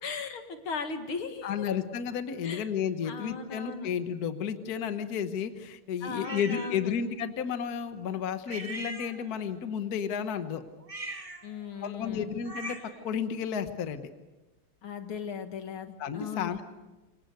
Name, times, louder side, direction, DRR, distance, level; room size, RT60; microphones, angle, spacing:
voice 1, 0.0-1.7 2.4-2.7 3.0-3.9 6.0-6.9 11.4-12.3 14.8-16.6, left 6 dB, 75° left, 7 dB, 2.7 m, -37 dB
voice 2, 1.4-10.6 11.8-14.1 16.0-16.6, left 7 dB, 50° left, 9 dB, 1.5 m, -32 dB
sound 1, 6.2-6.8 8.5-9.5 10.8-13.1, right 2 dB, 15° right, 1.9 m, -41 dB
28.0 x 25.0 x 6.7 m, 1.1 s
omnidirectional pair, 2.4 m